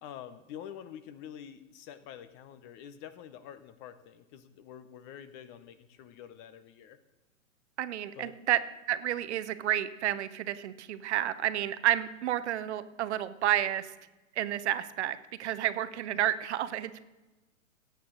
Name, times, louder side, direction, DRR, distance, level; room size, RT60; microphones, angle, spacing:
voice 1, 0.0-7.0 8.1-8.3, left 9 dB, 30° left, 13 dB, 0.7 m, -47 dB
voice 2, 7.8-8.6 8.9-13.9 14.4-17.0, right 12 dB, 55° right, 14 dB, 0.8 m, -30 dB
15.5 x 9.2 x 3.8 m, 1.1 s
hypercardioid pair, 115°, 41 cm